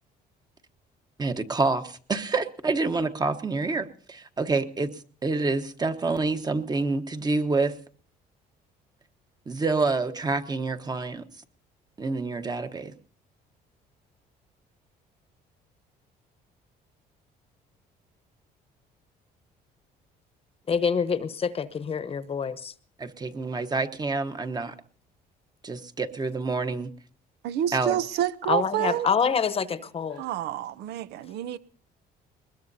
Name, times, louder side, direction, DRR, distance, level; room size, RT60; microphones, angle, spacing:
voice 1, 1.2-4.9 5.2-7.8 9.5-11.2 12.0-12.9 23.0-24.7 25.6-26.9 27.7-28.0, right 3 dB, 25° right, 1.2 m, -27 dB
voice 2, 20.7-22.7 28.5-30.2, left 6 dB, 35° left, 1.0 m, -26 dB
voice 3, 27.4-29.1 30.1-31.6, right 12 dB, 80° right, 0.6 m, -28 dB
21.5 x 21.0 x 2.8 m
cardioid pair, 110°, 17 cm